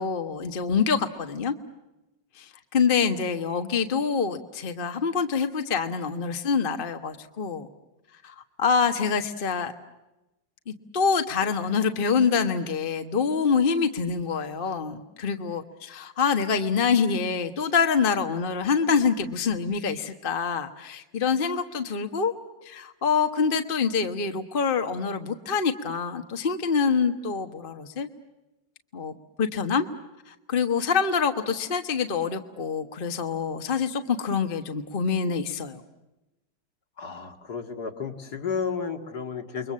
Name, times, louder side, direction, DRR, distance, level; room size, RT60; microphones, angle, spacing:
voice 1, 0.0-1.5 2.4-7.7 8.2-9.7 10.7-22.3 22.6-28.1 28.9-29.1 29.4-29.9 30.3-35.8, left 5 dB, 30° left, 7 dB, 1.4 m, -26 dB
voice 2, 37.0-39.7, left 6 dB, 60° left, 5 dB, 2.6 m, -32 dB
29.5 x 23.0 x 7.5 m, 0.99 s
omnidirectional pair, 1.9 m